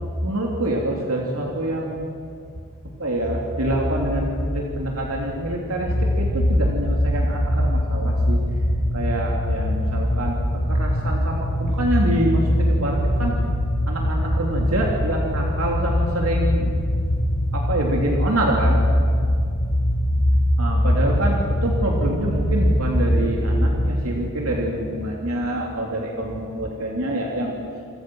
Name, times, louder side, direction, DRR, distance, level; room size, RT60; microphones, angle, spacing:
voice 1, 0.2-2.0 2.8-8.4 8.9-13.3 13.9-16.8 17.5-18.8 20.6-27.7, right 1 dB, 70° right, -1 dB, 3.3 m, -26 dB
sound 1, 5.9-23.9, equal, 70° left, 3.9 m, -22 dB
29.0 x 25.0 x 6.4 m, 2.3 s
head